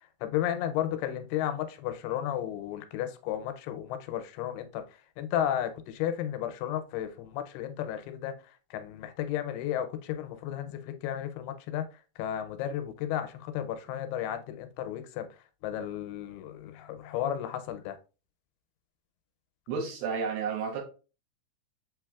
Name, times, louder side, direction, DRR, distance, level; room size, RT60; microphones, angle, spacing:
voice 1, 0.2-4.8 5.2-8.3 8.7-11.9 12.2-15.3 15.6-18.0, left 11 dB, 85° left, 2.5 m, -33 dB
voice 2, 19.7-20.8, right 5 dB, 70° right, 2.6 m, -31 dB
7.5 x 3.1 x 2.3 m
omnidirectional pair, 4.5 m